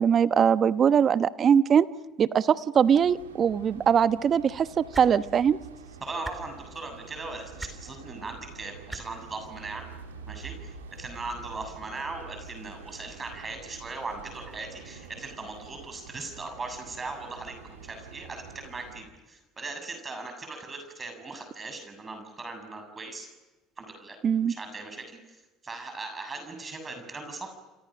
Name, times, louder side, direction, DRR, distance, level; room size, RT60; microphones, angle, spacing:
voice 1, 0.0-1.9 2.2-5.6 24.2-24.5, right 7 dB, 45° right, 14 dB, 1.0 m, -22 dB
sound 1, 2.8-19.0, right 5 dB, 90° right, 3.2 m, -47 dB
sound 2, 4.9-5.1 6.2-6.4 7.6-7.7 8.9-9.0 10.3-10.4, right 1 dB, 10° right, 4.5 m, -37 dB
voice 2, 6.0-9.8 10.3-23.3 23.8-24.2 24.4-25.0 25.6-27.5, right 3 dB, 30° right, 6 dB, 7.3 m, -39 dB
28.5 x 28.5 x 6.4 m, 1.1 s
hypercardioid pair, 65°, 0 cm